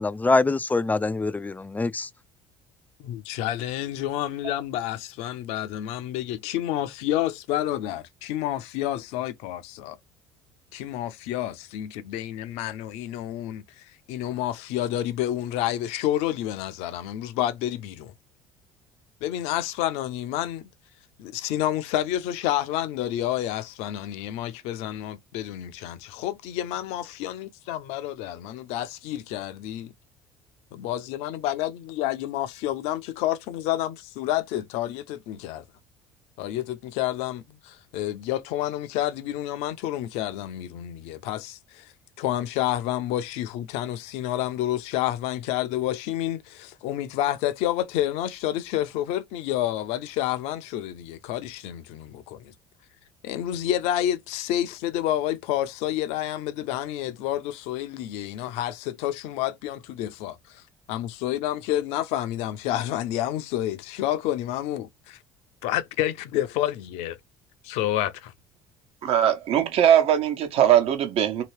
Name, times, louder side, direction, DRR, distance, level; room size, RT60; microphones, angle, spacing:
voice 1, 0.0-2.1, left 3 dB, 15° left, 0.3 m, -24 dB
voice 2, 3.0-10.0 10.7-18.1 19.2-20.7 21.2-29.9 30.7-35.6 36.4-52.5 53.2-60.6 60.9-65.2 65.6-67.2 67.6-68.3, left 13 dB, 70° left, 0.6 m, -29 dB
voice 3, 69.0-71.4, right 10 dB, 60° right, 1.0 m, -20 dB
2.9 x 2.8 x 3.1 m
hypercardioid pair, 65°, 12 cm